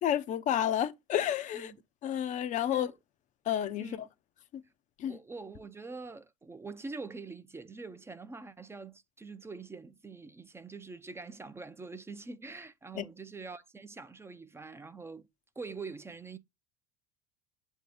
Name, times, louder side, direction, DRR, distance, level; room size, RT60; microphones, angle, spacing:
voice 1, 0.0-1.7 2.0-2.9 3.5-3.9 4.5-4.6 5.0-5.2 12.9-13.0, left 10 dB, 50° left, 0.5 m, -30 dB
voice 2, 5.0-15.3 15.6-16.4, right 4 dB, 15° right, 0.5 m, -44 dB
7.6 x 2.7 x 4.8 m
supercardioid pair, 80°, 16 cm